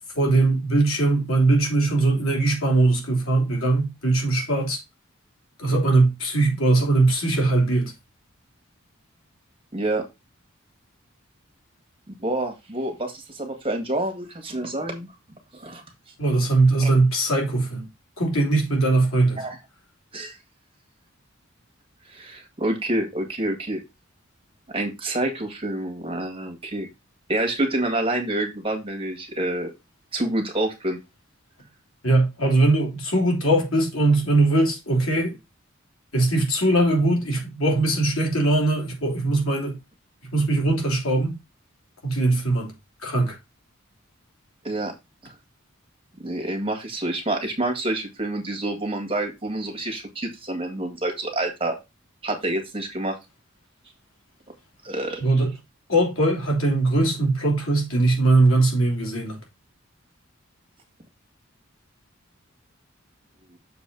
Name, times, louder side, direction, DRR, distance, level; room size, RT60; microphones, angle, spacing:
voice 1, 0.1-4.8 5.6-7.9 16.2-17.9 18.2-19.5 32.0-35.4 36.1-39.8 40.3-41.4 42.0-42.7 43.0-43.4 55.2-55.5 55.9-59.4, right 2 dB, 85° left, 3.0 m, -21 dB
voice 2, 9.7-10.0 12.2-15.1 15.5-15.8 16.8-16.9 19.4-19.6 20.1-20.4 22.1-23.8 24.7-26.9 27.3-29.7 30.1-31.0 44.6-44.9 45.2-45.3 46.2-51.8 52.2-53.2 54.8-55.2, right 1 dB, 25° right, 1.8 m, -27 dB
6.9 x 4.2 x 5.3 m
head